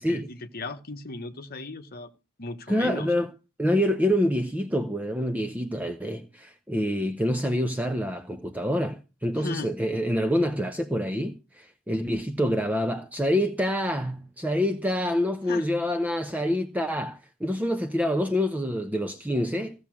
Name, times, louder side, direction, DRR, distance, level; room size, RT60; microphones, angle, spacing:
voice 1, 0.0-2.1 2.4-3.3 9.4-9.7 15.5-15.7 17.4-17.5, left 3 dB, 45° left, 1.1 m, -37 dB
voice 2, 2.7-3.3 3.6-19.9, equal, 5° right, 0.8 m, -26 dB
15.5 x 7.0 x 6.2 m
head